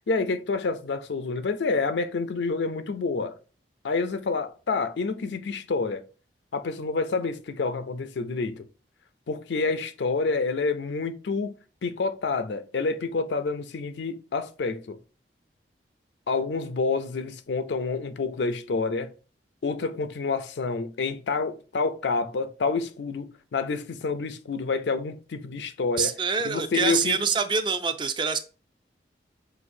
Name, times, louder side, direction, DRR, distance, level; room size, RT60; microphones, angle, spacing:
voice 1, 0.1-3.4 3.8-6.0 6.5-8.6 9.3-11.5 11.8-15.0 16.3-19.1 19.6-26.1 26.4-27.2, left 4 dB, 80° left, 0.5 m, -28 dB
voice 2, 26.0-28.4, right 5 dB, 25° right, 0.3 m, -25 dB
6.1 x 2.6 x 2.6 m
head